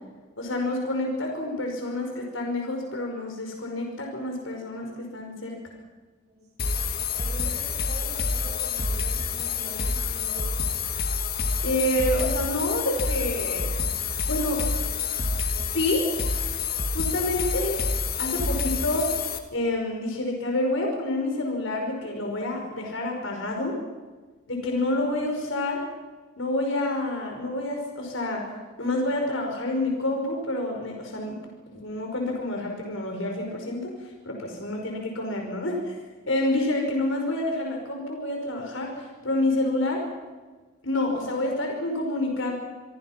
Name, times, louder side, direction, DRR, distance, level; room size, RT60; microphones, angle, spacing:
voice 1, 0.4-5.6 11.6-13.7 14.3-14.6 15.6-16.1 16.9-17.8 18.2-19.1 19.5-23.8 24.5-25.8 26.4-28.5 28.8-31.3 31.7-35.9 36.3-40.1 40.8-42.5, left 1 dB, 70° left, 2 dB, 5.4 m, -28 dB
sound 1, 6.6-19.4, left 4 dB, 45° left, 2.1 m, -28 dB
voice 2, 7.2-10.4, right 1 dB, 35° right, -5 dB, 7.4 m, -43 dB
28.5 x 24.0 x 6.0 m, 1.3 s
head